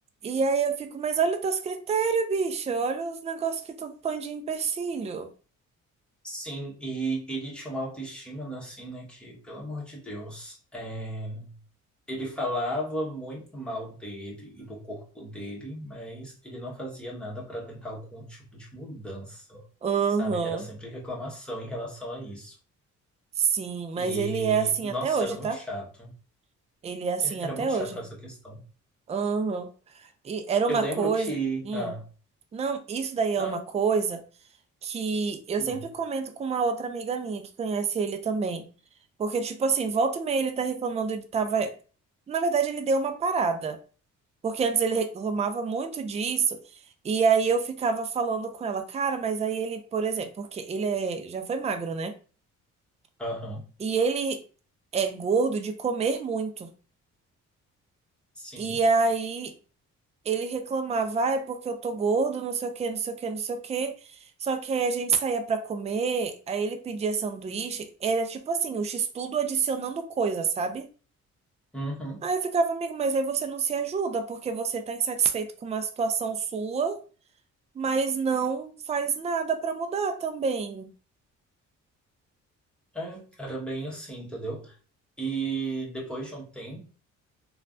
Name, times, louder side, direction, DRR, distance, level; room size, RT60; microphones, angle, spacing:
voice 1, 0.2-5.3 19.8-20.6 23.4-25.6 26.8-27.9 29.1-29.7 30.2-31.3 31.7-31.9 32.5-34.2 34.8-38.6 39.2-41.7 42.3-43.8 44.4-46.6 47.0-52.1 53.8-54.4 54.9-56.7 58.6-59.5 60.3-70.9 72.2-77.0 77.8-80.9, right 5 dB, 20° right, 0.4 m, -27 dB
voice 2, 6.2-11.5 12.1-19.7 20.2-22.5 24.0-26.1 27.2-28.6 30.7-32.1 33.4-33.6 35.6-35.8 53.2-53.6 58.3-58.8 71.7-72.2 82.9-84.7 85.2-86.8, right 1 dB, 5° left, 1.2 m, -35 dB
3.1 x 2.3 x 2.5 m
cardioid pair, 90°, 30 cm